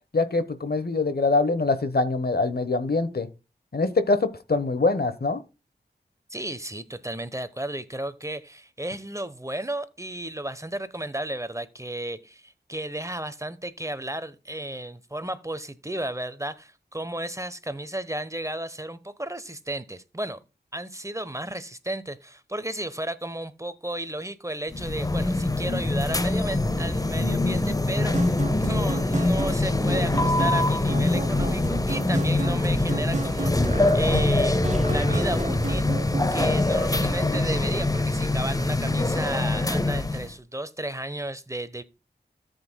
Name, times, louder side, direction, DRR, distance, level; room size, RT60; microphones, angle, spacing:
voice 1, 0.1-3.3 3.7-5.4, left 3 dB, 65° left, 1.1 m, -24 dB
voice 2, 6.3-20.4 20.7-34.6 34.9-35.9 36.3-41.8, right 1 dB, 15° right, 1.0 m, -33 dB
sound 1, 24.7-40.3, left 2 dB, 20° left, 0.7 m, -24 dB
sound 2, 28.0-36.5, right 3 dB, 45° right, 1.1 m, -33 dB
13.5 x 8.3 x 2.2 m
wide cardioid pair, 45°, 17 cm